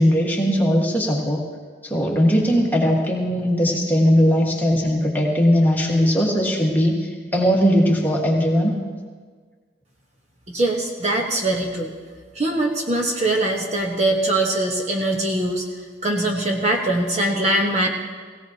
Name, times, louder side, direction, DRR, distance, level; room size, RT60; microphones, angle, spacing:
voice 1, 0.0-1.4 1.8-8.7, equal, 10° left, -3 dB, 1.6 m, -19 dB
voice 2, 10.5-11.9 12.3-15.6 16.0-17.9, right 1 dB, 35° right, 0 dB, 1.3 m, -22 dB
17.5 x 17.5 x 2.9 m, 1.5 s
head